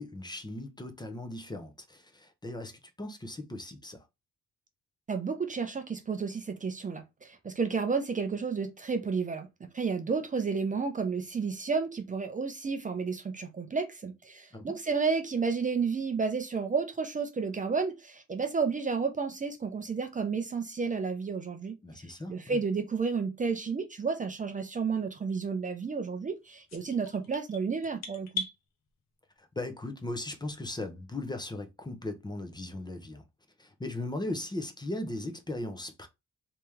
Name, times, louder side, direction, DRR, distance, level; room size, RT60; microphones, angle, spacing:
voice 1, 0.0-4.0 14.5-14.7 21.8-22.6 29.4-33.2 33.6-36.1, left 2 dB, 15° left, 0.7 m, -38 dB
voice 2, 5.1-28.5, right 5 dB, 25° right, 0.6 m, -31 dB
sound 1, 26.7-28.6, left 4 dB, 60° left, 1.0 m, -38 dB
3.2 x 2.9 x 3.5 m
cardioid pair, 90°, 30 cm